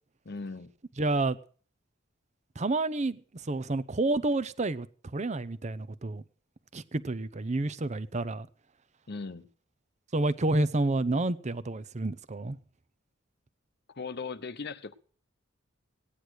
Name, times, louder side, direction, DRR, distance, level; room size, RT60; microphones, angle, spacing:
voice 1, 0.2-0.7 9.1-9.5 13.9-14.9, left 4 dB, 50° left, 0.8 m, -38 dB
voice 2, 1.0-1.4 2.6-4.9 5.1-6.2 6.7-8.5 10.1-12.6, right 2 dB, 35° right, 0.7 m, -29 dB
17.0 x 10.0 x 6.3 m
head